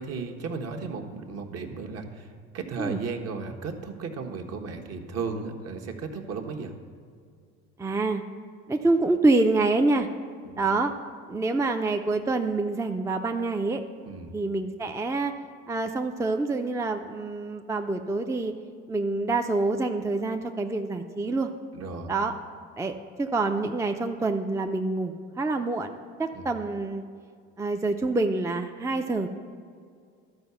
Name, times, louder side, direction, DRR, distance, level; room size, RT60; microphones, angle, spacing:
voice 1, 0.0-6.7 10.5-10.7 14.1-14.3 21.7-22.1 26.3-26.5, right 4 dB, 55° right, 4 dB, 1.3 m, -35 dB
voice 2, 7.8-8.2 8.7-10.1 10.6-10.9 11.3-13.8 14.3-15.3 15.7-18.5 18.9-21.5 22.1-22.3 22.8-25.9 26.2-27.0 27.6-29.3, right 3 dB, 10° right, 5 dB, 0.5 m, -26 dB
12.0 x 4.7 x 7.1 m, 2.2 s
supercardioid pair, 80°, 31 cm